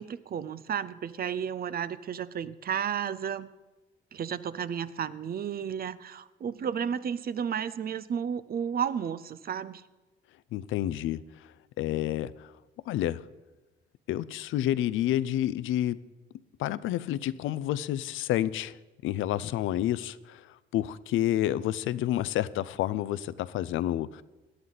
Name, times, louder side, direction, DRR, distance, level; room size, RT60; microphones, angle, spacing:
voice 1, 0.0-3.5 4.1-9.8, right 8 dB, 50° right, 16 dB, 0.7 m, -32 dB
voice 2, 10.5-11.2 11.8-12.5 12.9-13.2 14.1-16.0 16.6-18.7 19.0-20.5 20.7-24.2, left 13 dB, 85° left, 17 dB, 0.5 m, -29 dB
17.5 x 11.0 x 4.1 m, 1.1 s
cardioid pair, 90°, 20 cm